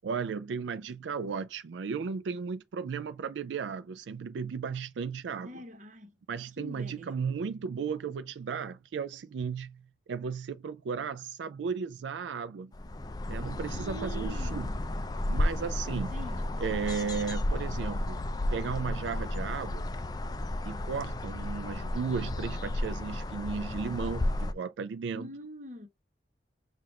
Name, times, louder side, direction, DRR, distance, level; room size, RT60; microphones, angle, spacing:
voice 1, 0.0-5.5 6.3-9.8 10.1-12.7 13.3-14.7 15.3-16.1 16.6-18.2 18.5-19.8 20.7-25.3, right 5 dB, 85° right, 0.4 m, -35 dB
voice 2, 5.4-6.2 6.6-7.1 13.7-14.9 16.1-16.6 25.1-25.9, right 1 dB, 40° right, 1.0 m, -44 dB
sound 1, 12.7-24.5, left 1 dB, 20° left, 0.3 m, -33 dB
5.8 x 2.5 x 3.1 m
head